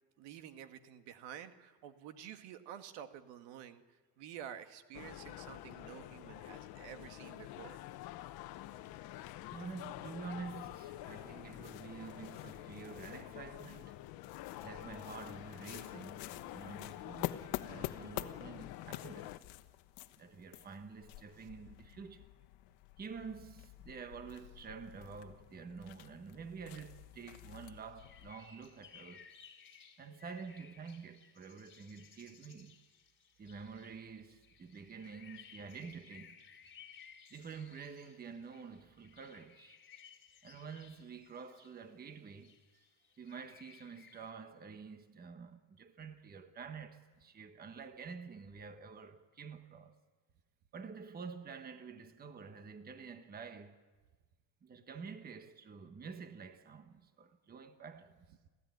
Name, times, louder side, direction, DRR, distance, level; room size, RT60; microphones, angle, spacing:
voice 1, 0.2-3.8 4.2-7.8 21.4-21.5, right 9 dB, 75° right, 1.8 m, -50 dB
sound 1, 4.9-19.4, left 14 dB, 55° left, 1.1 m, -48 dB
voice 2, 9.5-14.0 14.6-19.4 20.2-22.3 23.0-29.3 30.0-32.8 33.4-36.4 37.3-39.8 40.4-42.9 43.2-49.9 50.7-53.8 54.6-58.3, right 5 dB, 20° right, 1.2 m, -49 dB
sound 2, 10.7-28.3, left 16 dB, 80° left, 1.2 m, -49 dB
sound 3, 28.0-44.3, left 7 dB, 30° left, 3.4 m, -60 dB
26.0 x 16.0 x 9.4 m
cardioid pair, 150°, 43 cm